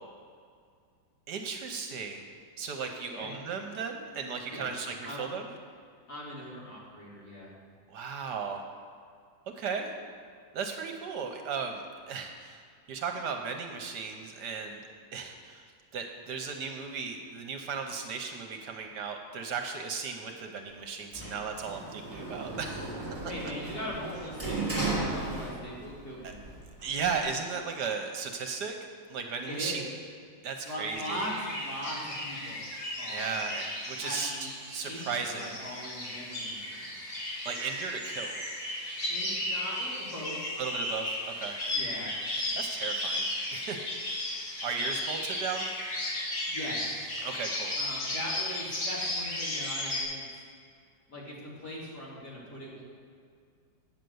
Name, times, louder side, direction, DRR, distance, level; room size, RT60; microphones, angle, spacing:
voice 1, 1.3-2.2 2.6-5.5 7.9-8.6 9.6-9.9 10.5-12.6 12.9-14.8 15.1-23.0 26.2-26.3 26.8-28.7 29.1-29.9 30.4-31.2 33.1-34.3 34.7-35.6 37.4-38.5 40.6-41.6 42.6-44.3 44.6-45.7 47.2-47.7, right 5 dB, 65° right, 4 dB, 1.3 m, -36 dB
voice 2, 6.1-7.5 23.3-26.5 29.5-29.8 30.6-32.6 33.0-33.4 34.0-34.5 34.8-36.9 39.1-40.4 41.7-42.1 46.5-47.0 47.8-50.4 51.1-52.8, equal, 55° left, -6 dB, 3.0 m, -40 dB
Sliding door, 21.1-26.0 26.3-27.2, right 2 dB, 20° right, 2.4 m, -35 dB
sound 1, 30.9-50.0, left 1 dB, 75° left, 3.8 m, -35 dB
8.9 x 6.6 x 7.8 m, 2.1 s
omnidirectional pair, 2.1 m